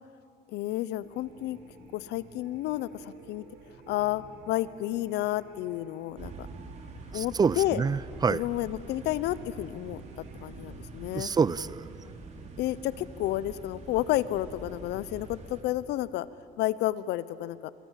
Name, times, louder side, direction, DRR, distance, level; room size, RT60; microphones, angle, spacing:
voice 1, 0.5-1.6 1.9-3.5 3.9-6.3 7.1-7.8 8.3-11.3 12.6-16.3 16.6-17.7, left 15 dB, 85° left, 17 dB, 0.8 m, -31 dB
sound 1, 1.0-10.5, right 4 dB, 80° right, 4.0 m, -54 dB
sound 2, 6.2-15.6, right 3 dB, 40° right, 3.6 m, -45 dB
voice 2, 7.1-8.4 11.1-11.9, right 5 dB, 25° right, 20 dB, 0.6 m, -27 dB
27.0 x 26.0 x 7.5 m, 2.6 s
cardioid pair, 110°, 17 cm